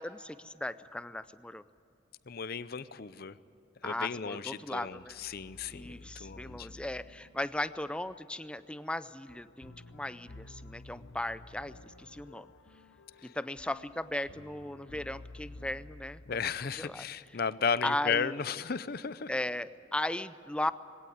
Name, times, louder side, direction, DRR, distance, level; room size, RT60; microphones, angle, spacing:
voice 1, 0.0-1.6 3.8-5.2 5.7-12.5 13.3-16.2 16.6-17.1 17.8-18.3 19.3-20.7, left 1 dB, 5° left, 14 dB, 0.4 m, -37 dB
voice 2, 2.3-3.4 3.8-6.7 13.2-13.3 16.3-19.3, left 6 dB, 50° left, 16 dB, 0.6 m, -34 dB
sound 1, 4.9-17.0, left 2 dB, 85° left, 0.8 m, -52 dB
21.0 x 17.5 x 9.3 m, 3.0 s
head